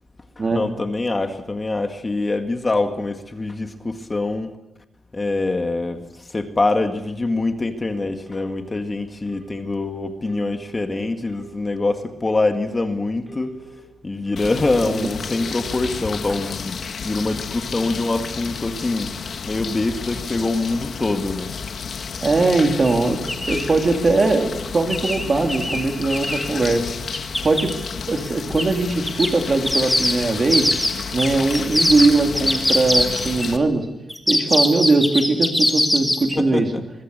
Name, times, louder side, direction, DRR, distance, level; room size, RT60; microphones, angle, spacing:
voice 1, 0.4-4.5 5.1-6.0 6.3-13.6 14.0-16.8 17.0-19.1 19.4-21.5 36.4-36.8, left 2 dB, 25° left, 5 dB, 1.9 m, -24 dB
Telephone, 8.3-8.8 9.3-9.8 10.3-10.8 11.3-11.8 12.3-12.8 13.3-13.8 14.3-14.8 15.3-15.8, right 4 dB, 10° right, 5.6 m, -44 dB
sound 1, 14.4-33.6, left 6 dB, 60° left, 1.8 m, -31 dB
voice 2, 22.2-23.2 23.5-26.9 27.4-27.7 28.1-30.7 31.1-33.9 34.3-36.7, right 3 dB, 35° right, 3 dB, 3.1 m, -20 dB
sound 2, 22.9-23.0 23.3-23.7 24.9-26.5 27.1-27.7 28.6-28.7 29.1-33.5 34.1-36.4, left 1 dB, 5° left, 2.4 m, -22 dB
24.5 x 21.5 x 6.8 m, 0.92 s
wide cardioid pair, 125°, 0 cm